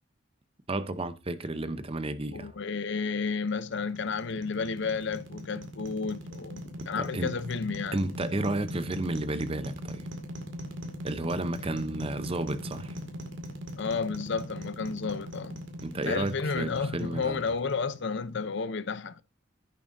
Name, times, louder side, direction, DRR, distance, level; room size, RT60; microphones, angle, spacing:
voice 1, 0.7-2.5 7.0-7.3 7.9-10.1 11.0-13.0 15.8-17.4, right 2 dB, 30° right, 0.8 m, -32 dB
voice 2, 2.3-6.6 6.9-8.0 13.8-15.6 16.0-19.2, left 5 dB, 65° left, 0.7 m, -32 dB
sound 1, 3.2-18.4, equal, 70° right, 2.2 m, -40 dB
11.0 x 8.9 x 2.7 m
head